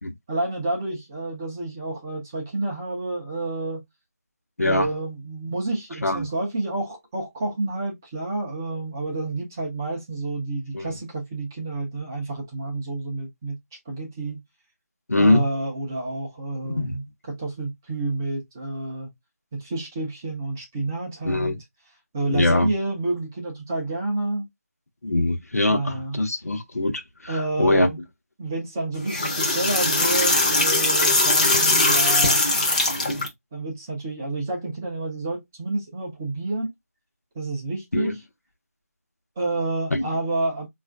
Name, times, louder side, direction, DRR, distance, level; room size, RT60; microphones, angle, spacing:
voice 1, 0.3-3.8 4.6-13.6 13.9-14.4 15.2-19.1 19.5-21.6 22.1-24.5 25.7-26.2 27.3-28.0 28.4-32.5 33.5-36.7 37.3-38.1 39.4-40.7, right 2 dB, 10° right, 0.5 m, -29 dB
voice 2, 15.1-15.4 16.8-16.9 21.2-21.5 22.3-22.7 25.0-27.9 37.9-38.1 39.9-40.1, left 2 dB, 70° left, 0.8 m, -22 dB
sound 1, 28.9-33.3, left 2 dB, 30° left, 0.7 m, -20 dB
4.1 x 2.4 x 2.3 m
figure-of-eight pair, 165°, 8 cm